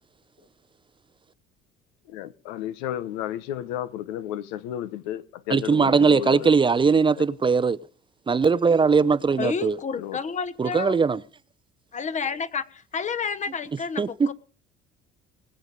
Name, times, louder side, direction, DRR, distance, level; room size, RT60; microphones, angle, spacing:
voice 1, 2.1-6.5 7.2-7.3 10.0-10.2, left 11 dB, 85° left, 0.9 m, -33 dB
voice 2, 5.5-7.8 8.3-9.8 10.6-11.2 14.0-14.3, right 5 dB, 25° right, 0.6 m, -20 dB
voice 3, 9.4-11.1 11.9-14.3, left 6 dB, 35° left, 1.1 m, -30 dB
20.5 x 7.8 x 5.3 m
supercardioid pair, 85°, 21 cm